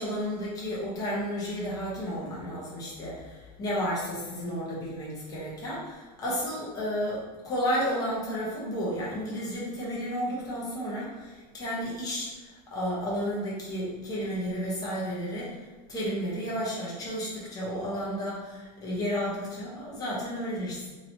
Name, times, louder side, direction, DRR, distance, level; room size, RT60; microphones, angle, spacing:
voice 1, 0.0-15.6 15.9-20.9, equal, 20° left, -7 dB, 1.0 m, -32 dB
2.9 x 2.9 x 2.8 m, 1.3 s
supercardioid pair, 145°, 21 cm